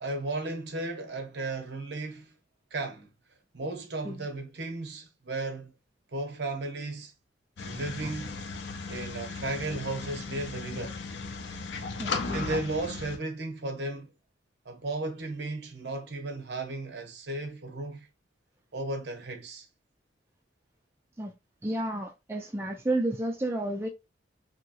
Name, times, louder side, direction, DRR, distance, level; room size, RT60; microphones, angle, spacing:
voice 1, 0.0-2.3 2.7-3.1 3.5-5.7 6.1-7.1 7.6-8.3 8.9-11.0 12.3-14.1 14.6-18.1 18.7-19.7, right 2 dB, 65° right, 0.8 m, -35 dB
sound 1, 7.6-13.2, left 4 dB, 65° left, 0.5 m, -36 dB
voice 2, 12.0-12.5 21.2-21.3 21.6-23.9, right 1 dB, 15° right, 0.3 m, -31 dB
2.9 x 2.7 x 2.4 m
head